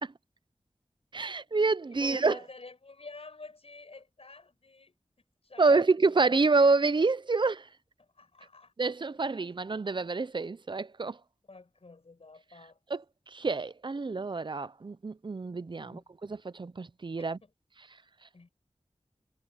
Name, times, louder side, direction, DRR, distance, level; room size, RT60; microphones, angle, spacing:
voice 1, 1.1-2.4 5.6-7.7 8.8-11.2 12.9-13.0 13.3-17.4, right 3 dB, 50° right, 0.6 m, -27 dB
voice 2, 1.9-4.9 5.4-6.2 8.0-9.0 9.3-9.5 11.5-12.8 15.8-16.1 17.2-17.5 18.3-18.5, left 3 dB, 75° left, 5.8 m, -49 dB
wide cardioid pair, 60°, 10 cm